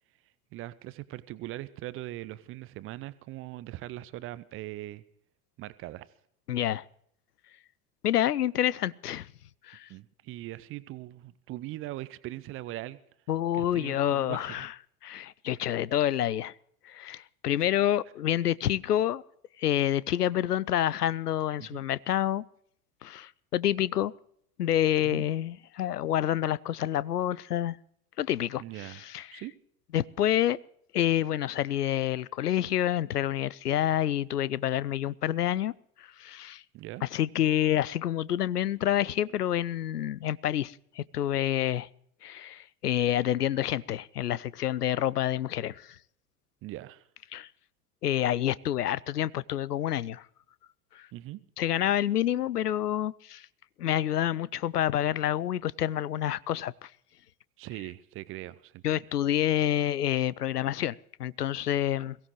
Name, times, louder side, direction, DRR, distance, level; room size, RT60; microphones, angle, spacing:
voice 1, 0.5-5.0 5.6-6.1 9.9-13.0 13.5-14.7 17.6-17.8 21.6-21.8 25.0-25.3 28.6-29.5 36.7-37.0 46.6-47.1 51.1-51.4 57.6-59.0, right 16 dB, 30° right, 0.6 m, -41 dB
voice 2, 6.5-6.8 8.0-9.3 9.6-9.9 13.3-14.7 15.0-16.5 16.8-19.2 19.6-22.4 23.0-24.1 24.6-27.8 28.2-29.4 29.9-30.6 30.9-36.6 37.0-41.9 42.2-46.0 47.3-47.5 48.0-50.3 50.9-51.1 51.6-53.5 53.8-56.9 58.8-62.2, left 11 dB, 80° left, 0.5 m, -28 dB
22.0 x 16.0 x 3.1 m
figure-of-eight pair, 80°, 47 cm